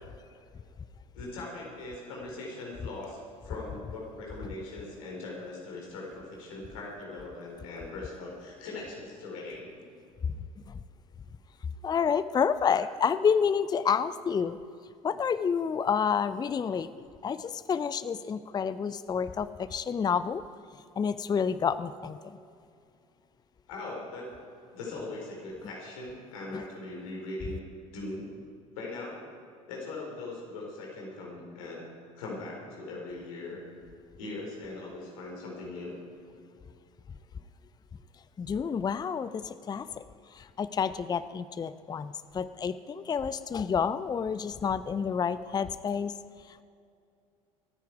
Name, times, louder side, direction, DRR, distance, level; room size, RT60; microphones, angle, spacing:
voice 1, 1.1-9.7 12.8-12.9 23.7-24.3 24.7-27.6 27.9-28.3 28.7-29.2 29.7-31.8 32.2-33.6 34.2-36.0, left 2 dB, 70° left, -2 dB, 4.2 m, -40 dB
voice 2, 11.8-14.6 15.0-16.9 17.2-20.4 21.0-22.2 26.5-26.7 38.4-40.0 40.3-46.1 46.5-46.6, left 6 dB, 20° left, 14 dB, 0.5 m, -29 dB
25.0 x 9.4 x 4.7 m, 2.4 s
hypercardioid pair, 65°, 18 cm